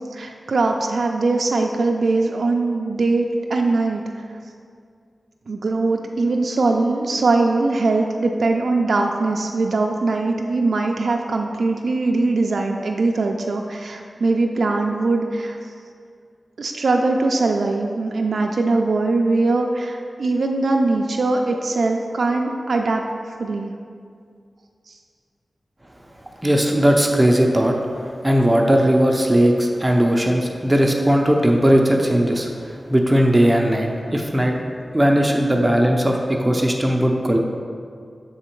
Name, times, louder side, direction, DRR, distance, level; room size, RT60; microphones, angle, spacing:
voice 1, 0.1-4.3 5.5-15.6 16.6-23.7 24.9-25.0, right 3 dB, 85° right, 2 dB, 0.3 m, -21 dB
voice 2, 26.4-34.5 34.9-37.4, equal, 20° right, 1 dB, 0.5 m, -18 dB
7.1 x 3.8 x 4.4 m, 2.2 s
wide cardioid pair, 75°, 0 cm